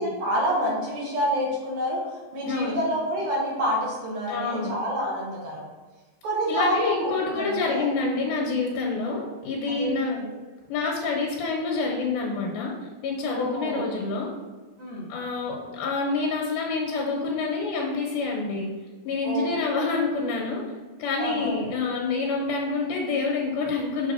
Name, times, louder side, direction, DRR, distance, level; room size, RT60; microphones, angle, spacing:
voice 1, 0.0-5.6 6.2-7.9 9.1-9.2 9.8-10.3 13.3-13.9 14.8-15.1 19.2-19.8 21.2-21.6, equal, 50° right, -4 dB, 2.3 m, -28 dB
voice 2, 2.5-2.8 4.3-4.7 6.5-10.2 10.7-12.7 13.0-14.3 15.1-18.7 19.0-20.6 21.0-24.1, left 4 dB, 80° left, -1 dB, 2.5 m, -27 dB
6.4 x 3.5 x 5.5 m, 1.3 s
omnidirectional pair, 3.6 m